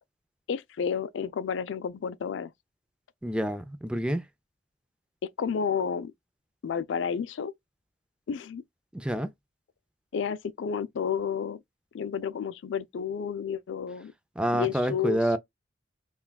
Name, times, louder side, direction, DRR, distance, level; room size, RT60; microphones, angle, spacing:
voice 1, 0.5-2.5 5.2-6.1 6.6-7.5 8.3-8.6 10.1-11.6 11.9-14.1 14.5-15.4, left 7 dB, 80° left, 0.4 m, -31 dB
voice 2, 3.2-4.2 8.9-9.3 14.4-15.4, right 1 dB, 5° right, 0.4 m, -27 dB
5.7 x 2.2 x 2.2 m
head